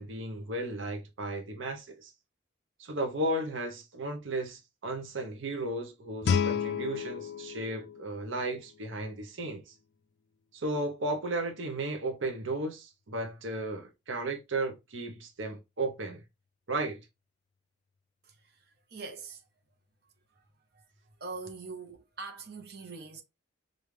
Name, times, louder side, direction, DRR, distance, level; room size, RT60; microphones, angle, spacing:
voice 1, 0.0-2.1 2.8-9.7 10.5-16.2 16.7-17.0, right 2 dB, 80° right, 0.8 m, -34 dB
Guitar, 6.2-9.0, left 6 dB, 55° left, 0.3 m, -32 dB
voice 2, 18.2-19.5 20.0-20.5 20.7-23.2, right 4 dB, 55° right, 0.9 m, -44 dB
5.0 x 2.6 x 3.1 m
head